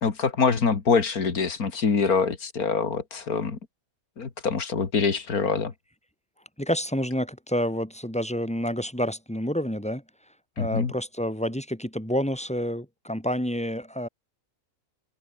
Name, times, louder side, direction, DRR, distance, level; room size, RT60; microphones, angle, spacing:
voice 1, 0.0-3.6 4.2-5.7 10.6-10.9, left 5 dB, 75° left, 2.6 m, -25 dB
voice 2, 6.6-10.0 10.6-14.1, equal, 5° left, 3.7 m, -28 dB
omnidirectional pair, 1.6 m